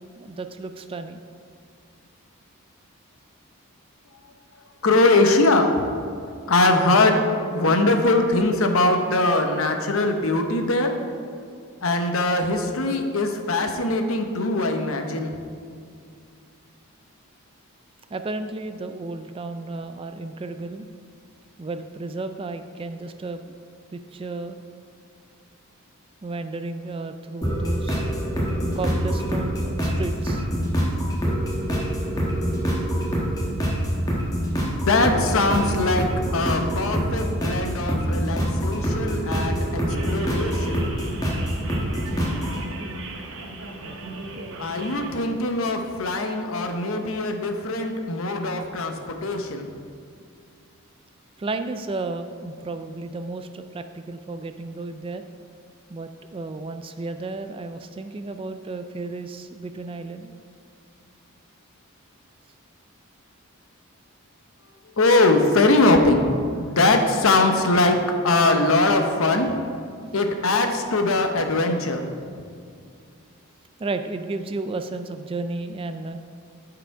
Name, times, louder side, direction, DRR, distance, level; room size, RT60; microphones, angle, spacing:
voice 1, 0.2-1.2 18.1-20.9 21.6-23.4 23.9-24.6 26.2-28.1 28.7-30.5 51.4-55.2 55.9-60.3 73.8-76.2, right 3 dB, 25° right, 8 dB, 0.3 m, -33 dB
voice 2, 4.8-5.9 6.5-11.0 11.8-15.3 34.9-36.1 36.3-40.8 44.6-49.7 65.0-69.5 70.1-72.1, left 2 dB, 65° left, 5 dB, 0.8 m, -21 dB
sound 1, 27.4-42.6, equal, 15° left, 1.4 m, -25 dB
sound 2, 39.9-45.1, right 2 dB, 60° right, 0.8 m, -37 dB
11.0 x 4.9 x 4.6 m, 2.3 s
head